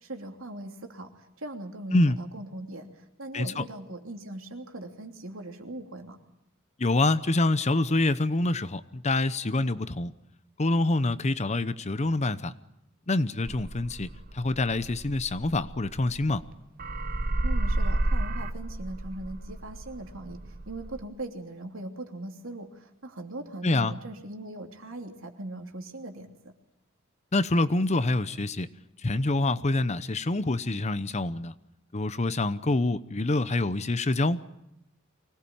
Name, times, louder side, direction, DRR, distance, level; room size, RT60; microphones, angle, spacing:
voice 1, 0.0-2.9 3.2-6.2 17.4-26.5, right 1 dB, 80° right, 4 dB, 3.0 m, -40 dB
voice 2, 3.3-3.6 6.8-10.1 10.6-12.5 13.1-14.1 14.3-16.4 23.6-23.9 27.3-28.7 29.0-31.5 31.9-34.4, left 2 dB, 35° left, 14 dB, 0.8 m, -26 dB
sound 1, 13.5-16.5 16.8-21.0, right 2 dB, 45° right, 1.2 m, -31 dB
24.5 x 18.5 x 8.8 m, 0.87 s
head